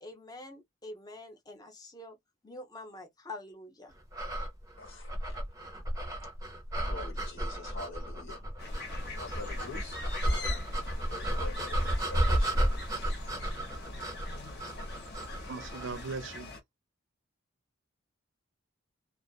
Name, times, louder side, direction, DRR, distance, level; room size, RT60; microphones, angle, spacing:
voice 1, 0.0-2.2 2.4-3.9, left 2 dB, 20° left, 0.5 m, -46 dB
sound 1, 4.1-16.0, right 1 dB, 15° right, 0.7 m, -33 dB
voice 2, 4.8-5.4 6.9-8.4 9.2-10.0 10.3-12.7, left 4 dB, 70° left, 1.4 m, -46 dB
sound 2, 8.6-16.6, left 3 dB, 50° left, 1.0 m, -44 dB
voice 3, 15.5-16.5, right 4 dB, 65° right, 0.4 m, -39 dB
2.4 x 2.3 x 2.3 m
head